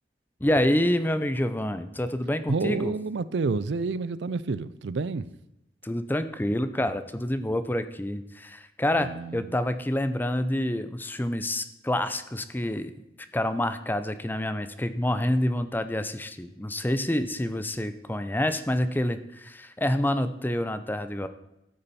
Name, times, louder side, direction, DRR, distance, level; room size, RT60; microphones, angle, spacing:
voice 1, 0.4-2.9 5.8-12.9 13.3-21.3, left 1 dB, 10° left, 0.5 m, -27 dB
voice 2, 2.5-5.3 8.9-9.5, right 4 dB, 75° right, 0.5 m, -29 dB
12.5 x 8.7 x 4.2 m
head